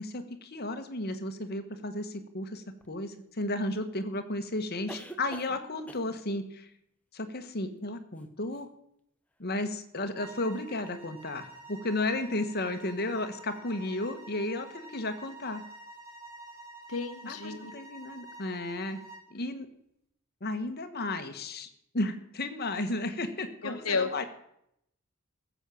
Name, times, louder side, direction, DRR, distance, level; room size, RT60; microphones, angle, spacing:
voice 1, 0.0-6.7 7.1-8.7 9.4-15.6 17.3-19.0 19.3-19.7 20.4-21.7 21.9-24.2, left 2 dB, 45° left, 8 dB, 1.3 m, -33 dB
sound 1, 2.8-2.9 4.9-5.6 5.9-6.2 8.2-8.3 8.5-8.6, equal, 5° left, 0.8 m, -45 dB
sound 2, 10.1-19.3, right 2 dB, 45° right, 3.6 m, -49 dB
voice 2, 16.9-17.7 23.6-24.1, left 4 dB, 75° left, 8 dB, 1.1 m, -32 dB
15.5 x 7.3 x 7.0 m, 0.77 s
head